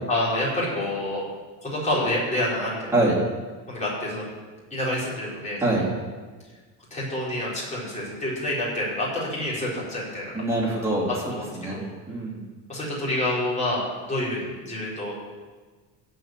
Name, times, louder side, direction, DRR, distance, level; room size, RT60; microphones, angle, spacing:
voice 1, 0.1-1.2 1.6-2.9 3.7-4.3 4.7-5.9 6.9-10.2 11.3-11.8 12.7-15.1, left 1 dB, 20° left, -7 dB, 5.1 m, -28 dB
voice 2, 10.3-11.1 11.6-12.4, right 2 dB, 5° right, -5 dB, 3.4 m, -24 dB
16.5 x 5.6 x 7.7 m, 1.3 s
cardioid pair, 155°, 39 cm